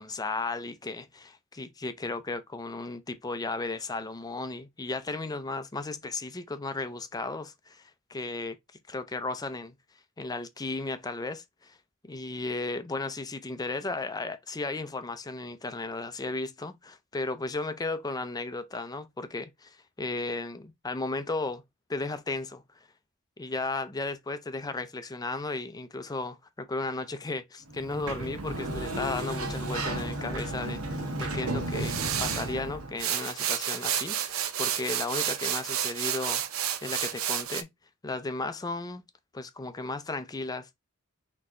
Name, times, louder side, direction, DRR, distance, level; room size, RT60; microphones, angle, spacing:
voice 1, 0.0-8.6 8.9-9.7 10.2-11.8 12.0-21.6 21.9-22.6 23.4-36.4 36.8-37.7 38.0-39.0 39.3-40.8, left 3 dB, 20° left, 0.5 m, -35 dB
Sliding door, 27.7-33.0, right 1 dB, 85° right, 1.2 m, -33 dB
sound 1, 31.7-32.5 33.0-37.6, right 10 dB, 70° right, 0.6 m, -31 dB
4.2 x 3.1 x 3.6 m
head